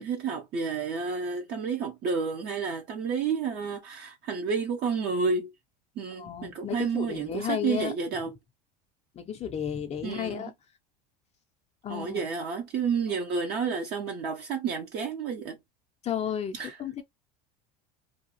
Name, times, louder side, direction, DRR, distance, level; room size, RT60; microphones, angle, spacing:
voice 1, 0.0-5.5 6.0-8.3 10.0-10.5 11.9-15.6 16.5-16.7, right 5 dB, 50° right, 0.7 m, -30 dB
voice 2, 6.2-7.9 9.2-10.5 11.8-12.3 16.0-17.0, left 9 dB, 30° left, 0.5 m, -33 dB
2.7 x 2.3 x 2.9 m
supercardioid pair, 90°, 21 cm